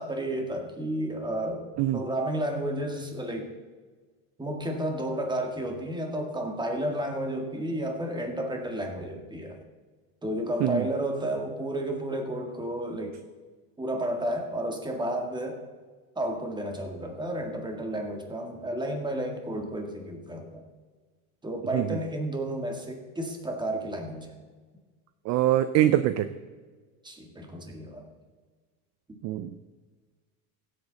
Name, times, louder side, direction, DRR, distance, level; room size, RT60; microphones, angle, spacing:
voice 1, 0.0-1.7 1.9-3.5 4.4-9.6 10.2-13.2 13.8-15.6 16.1-20.6 21.4-24.4 27.0-28.1 29.1-29.2, right 1 dB, 10° right, 3 dB, 1.8 m, -32 dB
voice 2, 25.2-26.3 29.2-29.5, right 13 dB, 35° right, 12 dB, 0.5 m, -23 dB
16.0 x 8.3 x 4.0 m, 1.4 s
supercardioid pair, 130°, 47 cm